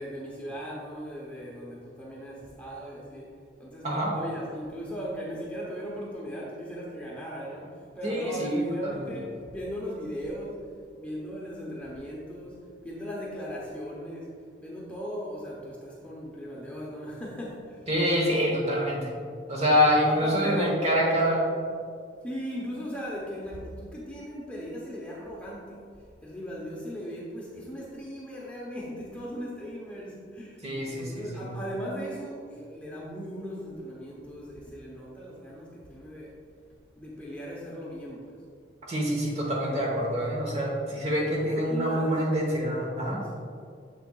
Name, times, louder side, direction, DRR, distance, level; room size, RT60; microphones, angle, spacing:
voice 1, 0.0-10.7 10.9-14.3 14.6-17.9 19.5-19.8 20.0-20.7 21.5-21.8 22.2-36.4 37.0-38.4 41.0-42.2 42.9-43.4, equal, 5° left, -5 dB, 0.8 m, -38 dB
voice 2, 8.0-9.1 17.9-19.1 19.5-21.4 30.6-31.4 38.9-43.2, equal, 35° right, -2 dB, 1.1 m, -26 dB
7.5 x 6.6 x 2.3 m, 2.3 s
head